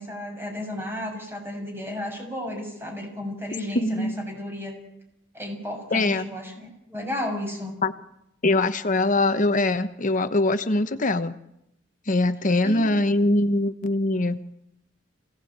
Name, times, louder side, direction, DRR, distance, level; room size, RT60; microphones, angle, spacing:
voice 1, 0.0-4.7 5.3-7.7 12.6-12.9, left 1 dB, 10° right, 2 dB, 6.9 m, -33 dB
voice 2, 3.7-4.2 5.9-6.3 7.8-7.9 8.4-11.4 12.1-14.4, left 2 dB, 40° left, 10 dB, 1.1 m, -22 dB
26.5 x 17.5 x 8.8 m, 0.82 s
head